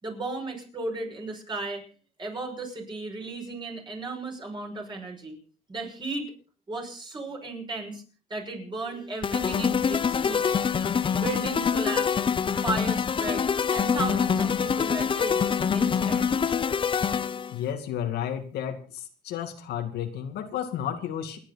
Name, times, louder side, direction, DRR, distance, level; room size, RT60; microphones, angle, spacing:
voice 1, 0.0-1.8 2.2-5.4 5.7-6.3 6.7-8.0 8.3-10.6 11.1-12.2 12.6-15.4 15.7-16.5, right 3 dB, 25° right, 1 dB, 6.4 m, -35 dB
sound 1, 9.2-17.6, left 6 dB, 30° left, 0.7 m, -25 dB
voice 2, 17.5-18.8 19.3-21.4, left 9 dB, 75° left, 6 dB, 2.2 m, -32 dB
28.5 x 10.0 x 4.1 m, 0.37 s
cardioid pair, 110°, 17 cm